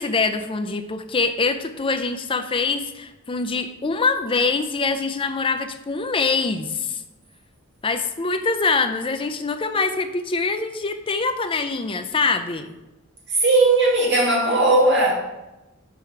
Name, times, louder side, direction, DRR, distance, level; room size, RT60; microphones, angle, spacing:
voice 1, 0.0-7.0 7.8-12.8, left 4 dB, 25° left, 8 dB, 0.5 m, -24 dB
voice 2, 13.3-15.1, right 2 dB, 55° right, -3 dB, 2.1 m, -17 dB
6.2 x 4.6 x 5.7 m, 1.0 s
head